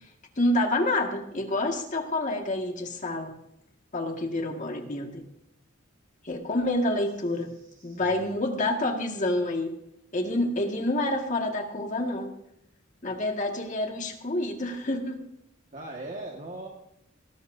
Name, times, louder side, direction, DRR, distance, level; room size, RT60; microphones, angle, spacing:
voice 1, 0.4-3.3 3.9-5.2 6.2-7.5 7.8-9.7 10.1-12.3 13.0-15.2, left 1 dB, 40° left, 2 dB, 1.9 m, -28 dB
voice 2, 7.4-8.4 15.7-16.7, right 2 dB, 40° right, -1 dB, 1.7 m, -40 dB
19.0 x 18.0 x 2.7 m, 0.80 s
head